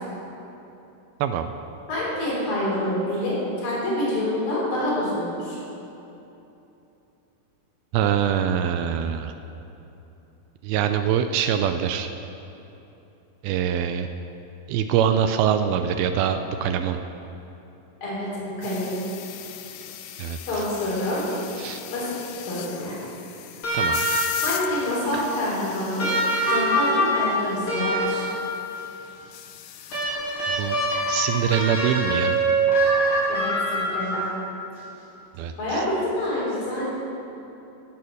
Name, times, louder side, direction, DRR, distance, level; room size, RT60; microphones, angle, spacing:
voice 1, 1.2-1.5 7.9-9.3 10.6-12.1 13.4-14.1 14.7-17.0 20.2-20.6 21.6-21.8 23.7-24.1 25.1-25.3 30.5-30.8 31.1-32.4 35.4-35.9, right 9 dB, 85° right, 8 dB, 2.2 m, -24 dB
voice 2, 1.9-5.6 18.0-19.0 20.5-21.2 21.9-22.1 22.5-22.9 24.4-26.1 26.5-28.3 33.3-34.2 35.6-36.8, left 1 dB, 60° left, -7 dB, 5.3 m, -27 dB
sound 1, 18.6-31.7, left 11 dB, 85° left, 2.0 m, -39 dB
sound 2, 23.6-24.6 26.0-28.6 29.9-34.4 35.7-35.8, right 1 dB, 35° left, 3.4 m, -24 dB
15.0 x 8.6 x 6.3 m, 2.9 s
omnidirectional pair, 4.8 m